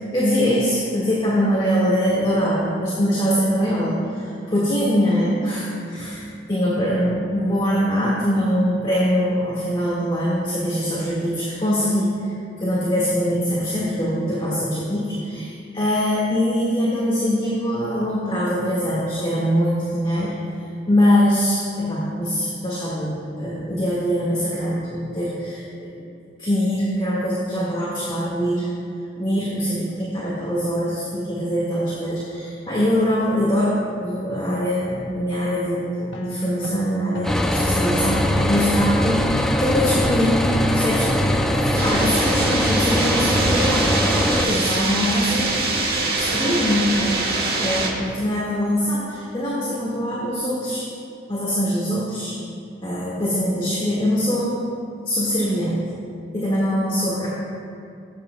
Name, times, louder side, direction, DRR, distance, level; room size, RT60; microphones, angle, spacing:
voice 1, 0.1-6.2 6.5-20.3 20.9-25.9 26.4-28.7 29.2-40.5 40.7-41.1 41.5-50.8 51.3-52.4 52.8-54.6 55.1-55.9 56.3-57.3, equal, 25° left, -8 dB, 1.7 m, -23 dB
sound 1, 36.1-43.5, equal, 70° left, 0.9 m, -31 dB
sound 2, 37.2-44.5, left 1 dB, 5° left, 0.4 m, -21 dB
sound 3, 41.8-47.9, right 3 dB, 50° right, 1.4 m, -24 dB
18.5 x 8.7 x 2.3 m, 2.5 s
head